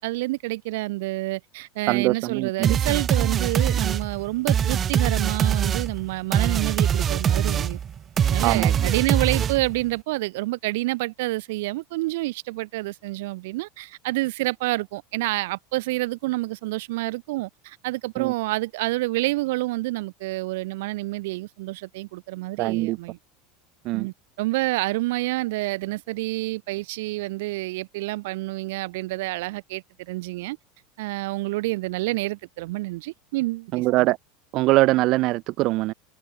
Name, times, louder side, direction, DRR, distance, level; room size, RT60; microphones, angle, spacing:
voice 1, 0.0-7.8 8.3-23.2 23.9-30.6 31.0-34.1, right 20 dB, 75° right, 2.0 m, -28 dB
voice 2, 1.9-2.7 8.4-8.9 18.2-18.3 22.6-23.0 23.8-24.1 33.7-34.2 34.5-35.9, right 19 dB, 50° right, 3.1 m, -22 dB
sound 1, 2.6-9.8, right 8 dB, 30° right, 3.7 m, -23 dB
supercardioid pair, 135°, 0 cm